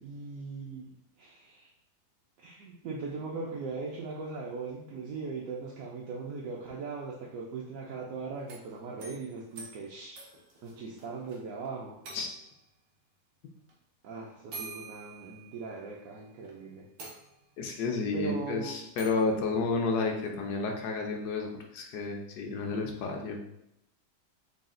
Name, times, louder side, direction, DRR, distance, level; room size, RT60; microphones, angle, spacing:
voice 1, 0.0-1.7 2.4-10.2 10.6-12.0 14.0-16.9 18.1-18.7, right 4 dB, 70° right, -3 dB, 0.9 m, -39 dB
sound 1, 8.4-11.4 11.7-11.8 12.0-12.6 13.7-13.8 14.5-15.9 16.4-16.5 17.0-17.7 19.0-19.3, right 3 dB, 90° right, 1.5 m, -47 dB
voice 2, 17.6-23.4, left 4 dB, 75° left, 2 dB, 1.2 m, -31 dB
4.1 x 2.3 x 3.7 m, 0.80 s
omnidirectional pair, 1.8 m